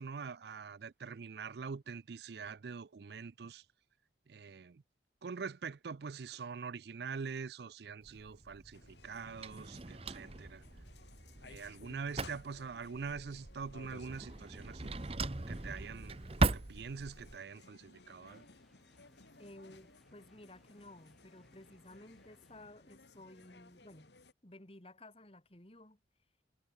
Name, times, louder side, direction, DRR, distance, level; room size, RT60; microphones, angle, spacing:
voice 1, 0.0-3.6 4.3-4.8 5.2-10.6 11.5-14.9 15.5-18.4, right 5 dB, 65° right, 0.4 m, -44 dB
Drawer open or close, 8.0-17.4, right 2 dB, 30° right, 0.9 m, -39 dB
sound 1, 8.7-24.3, left 3 dB, 75° left, 2.1 m, -59 dB
sound 2, 18.3-22.7, equal, ahead, 3.7 m, -70 dB
voice 2, 19.4-24.1 24.4-26.0, left 1 dB, 30° left, 2.3 m, -55 dB
head